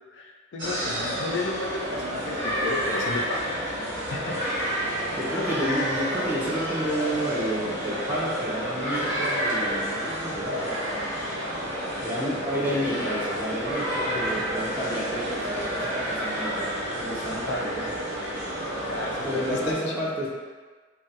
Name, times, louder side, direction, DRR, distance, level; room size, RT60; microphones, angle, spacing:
voice 1, 0.1-3.6 4.1-4.4 14.0-14.5 17.3-17.7 18.9-19.8, left 2 dB, 60° left, 0 dB, 0.3 m, -33 dB
sound 1, 0.6-19.7, equal, 65° right, 0.6 m, -29 dB
voice 2, 5.1-11.0 12.0-17.8 19.2-20.3, equal, 10° right, -7 dB, 0.5 m, -31 dB
2.2 x 2.2 x 2.7 m, 1.4 s
head